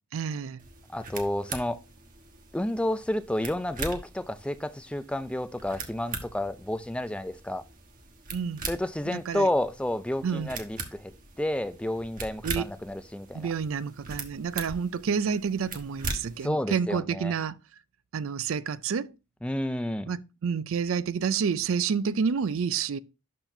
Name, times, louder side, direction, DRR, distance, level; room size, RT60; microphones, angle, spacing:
voice 1, 0.1-0.6 8.3-8.6 9.1-9.5 10.2-10.5 12.4-12.7 13.3-17.6 18.1-19.1 20.1-23.0, right 6 dB, 70° right, 0.4 m, -29 dB
sound 1, 0.6-16.5, right 4 dB, 40° right, 1.3 m, -41 dB
voice 2, 0.9-1.8 2.5-7.6 8.7-11.1 11.4-13.5 16.4-17.3 19.4-20.1, left 1 dB, 5° left, 0.4 m, -30 dB
11.5 x 4.2 x 2.6 m
head